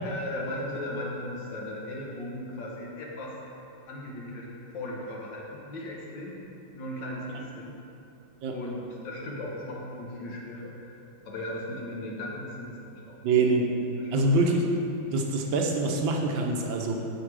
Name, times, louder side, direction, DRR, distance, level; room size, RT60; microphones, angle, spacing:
voice 1, 0.0-3.4 3.9-6.4 6.7-7.7 8.5-13.2 14.0-14.4, left 1 dB, 70° left, -3 dB, 1.8 m, -37 dB
voice 2, 13.2-13.6 14.1-14.7 15.1-16.9, right 3 dB, 80° right, 1 dB, 1.6 m, -24 dB
7.3 x 6.0 x 4.8 m, 2.7 s
omnidirectional pair, 2.1 m